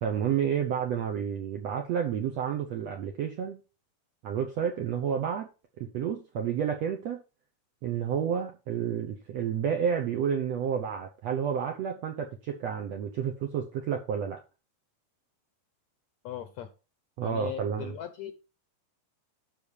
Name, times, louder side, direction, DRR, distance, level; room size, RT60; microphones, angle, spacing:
voice 1, 0.0-3.6 4.2-5.5 5.8-7.2 7.8-14.4 17.2-17.9, right 8 dB, 70° right, 3 dB, 1.6 m, -30 dB
voice 2, 16.2-16.7 17.2-18.3, left 10 dB, 70° left, 9 dB, 1.8 m, -39 dB
12.0 x 4.1 x 7.1 m, 0.32 s
omnidirectional pair, 4.3 m